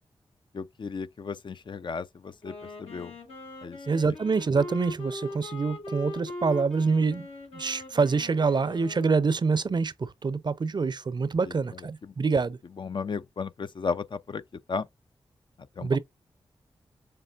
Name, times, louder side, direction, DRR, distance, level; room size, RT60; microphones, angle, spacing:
voice 1, 0.5-3.1 3.6-3.8 11.4-11.5 12.0-12.1 12.8-14.4 14.7-14.9 15.8-16.0, left 5 dB, 55° left, 0.5 m, -34 dB
Wind instrument woodwind instrument, 2.3-9.5, left 2 dB, 90° left, 2.3 m, -41 dB
voice 2, 3.9-7.3 7.5-12.6 15.8-16.0, right 4 dB, 50° right, 0.6 m, -26 dB
6.8 x 3.1 x 2.5 m
cardioid pair, 45°, 10 cm